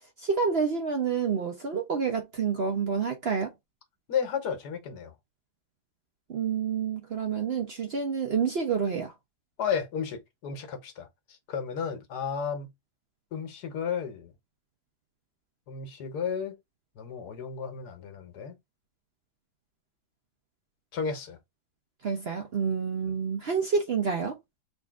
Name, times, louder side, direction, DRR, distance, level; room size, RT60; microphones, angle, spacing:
voice 1, 0.2-3.5 6.3-9.1 22.0-24.3, right 6 dB, 55° right, 0.7 m, -28 dB
voice 2, 4.1-5.1 9.6-12.7 13.3-14.3 15.7-16.6 17.0-18.6 20.9-21.4 23.1-23.2, left 7 dB, 80° left, 1.5 m, -33 dB
3.6 x 2.6 x 3.5 m
omnidirectional pair, 1.7 m